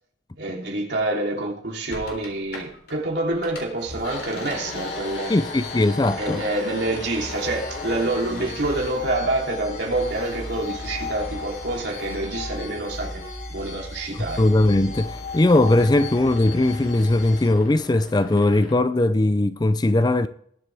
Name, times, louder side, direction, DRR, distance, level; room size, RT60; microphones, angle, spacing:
voice 1, 0.4-5.3 6.2-13.2 13.5-14.4, right 2 dB, 65° right, 3.3 m, -27 dB
sound 1, 1.9-3.0 3.3-13.6 14.0-18.8, left 1 dB, 55° left, 3.6 m, -39 dB
sound 2, 3.8-17.5, left 3 dB, 75° left, 5.2 m, -36 dB
voice 2, 5.3-6.4 14.4-20.3, left 2 dB, 20° left, 0.4 m, -19 dB
20.5 x 7.6 x 3.5 m
head